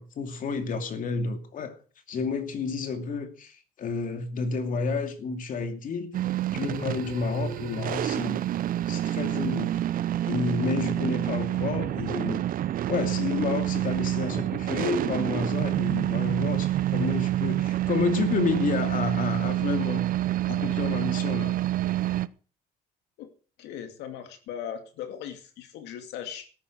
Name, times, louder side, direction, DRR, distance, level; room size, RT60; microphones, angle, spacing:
voice 1, 0.0-1.8 2.1-6.1 6.5-8.4 8.9-9.7 10.3-12.5 12.9-20.1 20.5-21.5, left 5 dB, 50° left, 2.6 m, -30 dB
sound 1, 6.1-22.3, right 13 dB, 55° right, 0.7 m, -27 dB
voice 2, 23.6-26.5, left 9 dB, 85° left, 2.4 m, -38 dB
13.5 x 10.0 x 6.3 m
cardioid pair, 110°, 17 cm